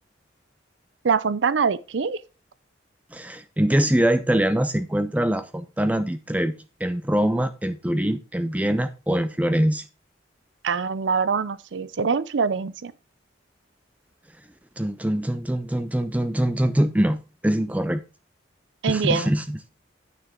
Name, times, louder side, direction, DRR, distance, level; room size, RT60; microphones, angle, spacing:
voice 1, 1.0-2.2 10.6-12.9 18.8-19.3, right 5 dB, 65° right, 0.5 m, -24 dB
voice 2, 3.1-6.5 6.8-9.9 14.8-18.0 18.9-19.7, right 1 dB, 5° right, 0.4 m, -23 dB
9.3 x 6.4 x 4.4 m
head